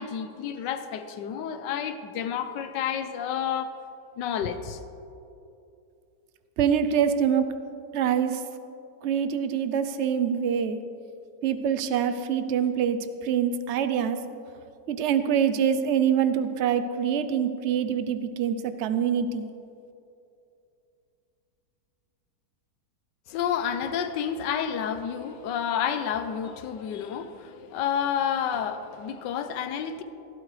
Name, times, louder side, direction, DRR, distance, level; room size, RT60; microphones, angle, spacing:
voice 1, 0.0-3.8 4.2-4.8 23.3-30.0, left 8 dB, 90° left, 10 dB, 1.4 m, -30 dB
voice 2, 6.6-7.5 7.9-8.4 9.0-10.8 11.4-14.2 14.9-19.5, right 8 dB, 65° right, 10 dB, 0.7 m, -25 dB
16.5 x 12.0 x 3.3 m, 2.7 s
omnidirectional pair, 1.9 m